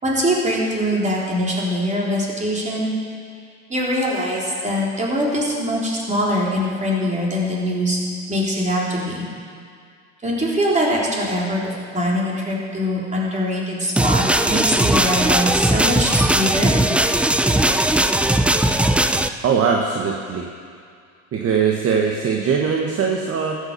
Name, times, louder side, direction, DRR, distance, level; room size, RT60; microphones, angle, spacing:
voice 1, 0.0-2.9 3.7-8.0 8.3-9.3 10.2-16.7, equal, 20° right, -4 dB, 3.8 m, -22 dB
sound 1, 14.0-19.3, right 1 dB, 5° right, 0.4 m, -18 dB
voice 2, 19.4-20.5 21.3-23.7, right 6 dB, 40° right, 1 dB, 1.4 m, -21 dB
13.5 x 8.3 x 6.8 m, 2.2 s
hypercardioid pair, 85°, 36 cm